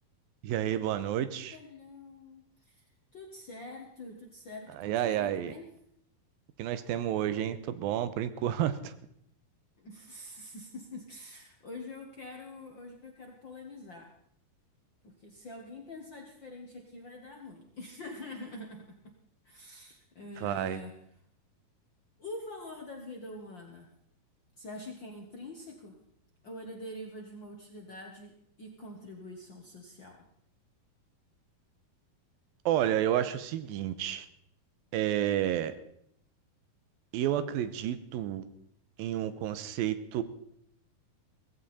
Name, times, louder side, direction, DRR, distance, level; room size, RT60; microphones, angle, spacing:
voice 1, 0.4-1.6 4.7-5.5 6.6-8.9 20.4-20.8 32.7-34.3 34.9-35.7 37.1-38.5 39.0-40.2, right 11 dB, 85° right, 13 dB, 2.6 m, -30 dB
voice 2, 1.5-2.9 3.1-5.6 9.8-14.1 15.0-19.1 19.4-20.9 22.2-23.9 24.6-26.0 26.4-30.2, left 2 dB, 55° left, 2 dB, 1.3 m, -45 dB
17.0 x 15.5 x 4.3 m, 0.71 s
omnidirectional pair, 4.1 m